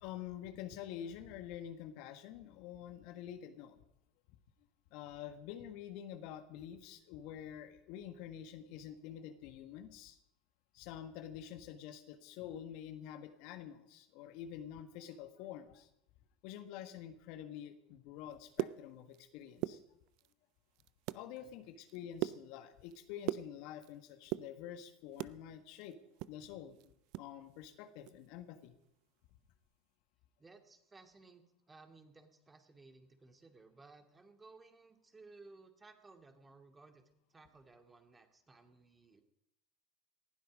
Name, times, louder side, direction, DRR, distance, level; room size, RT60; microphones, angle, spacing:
voice 1, 0.0-3.8 4.9-10.2 10.7-15.9 16.4-19.8 21.1-26.0 26.3-28.7, left 10 dB, 65° left, 8 dB, 1.5 m, -48 dB
sound 1, 18.3-19.3 19.5-20.3 20.8-21.3 21.6-23.9 24.2-25.4 25.8-27.3 27.6-27.7 28.0-28.3 28.6-28.9, right 18 dB, 60° right, 0.5 m, -40 dB
voice 2, 21.4-21.8 30.4-37.0 37.3-39.2, right 3 dB, 20° right, 6 dB, 2.2 m, -59 dB
19.0 x 12.0 x 5.2 m, 0.79 s
hypercardioid pair, 80°, 0 cm